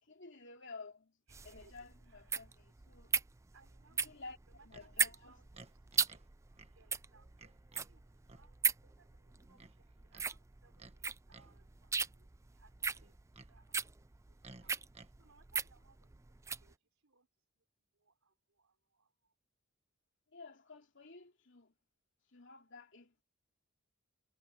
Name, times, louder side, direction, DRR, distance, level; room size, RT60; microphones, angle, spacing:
voice 1, 0.0-1.2 1.4-3.2 4.0-5.4 20.3-21.7 22.3-23.2, left 3 dB, 60° left, 3.1 m, -53 dB
sound 1, 1.3-16.7, right 6 dB, 15° right, 0.4 m, -38 dB
voice 2, 1.3-1.8 2.1-2.6 3.5-4.1 4.5-6.2 6.5-12.3 12.5-13.2 13.5-13.9 14.2-14.8 15.2-16.4 16.6-16.8 17.0-17.3 17.6-17.7 17.9-19.3, right 4 dB, 90° right, 3.8 m, -68 dB
Livestock farm animals working animals, 4.7-4.9 5.5-6.3 6.6-6.7 7.4-7.9 8.3-8.5 9.6-10.3 10.8-11.0 11.3-11.6 13.0-13.5 14.4-15.1, right 3 dB, 30° right, 1.4 m, -57 dB
head